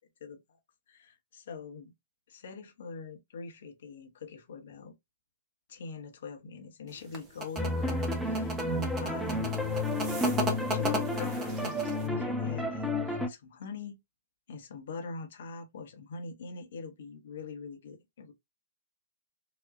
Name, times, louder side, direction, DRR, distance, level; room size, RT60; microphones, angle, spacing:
voice 1, 0.2-0.6 0.9-1.9 2.3-5.0 5.7-9.8 10.2-14.0 14.5-18.3, left 4 dB, 55° left, 1.2 m, -44 dB
sound 1, 6.9-12.1, right 1 dB, 20° right, 1.3 m, -35 dB
sound 2, 7.6-13.3, left 2 dB, 5° right, 0.7 m, -31 dB
5.0 x 2.8 x 2.6 m
figure-of-eight pair, 110°, 0 cm